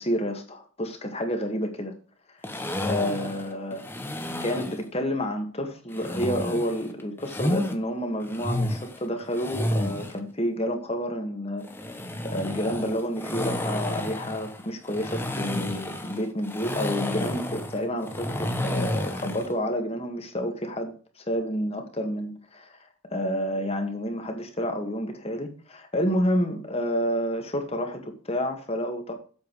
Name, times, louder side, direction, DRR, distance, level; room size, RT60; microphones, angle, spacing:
voice 1, 0.0-1.9 2.8-3.8 4.4-11.7 12.2-22.8 23.1-29.1, equal, 30° left, 1.9 m, -29 dB
sound 1, 2.4-4.8 5.9-7.7 8.2-10.2 11.6-19.5, left 1 dB, 10° left, 1.0 m, -31 dB
8.4 x 7.3 x 4.8 m
head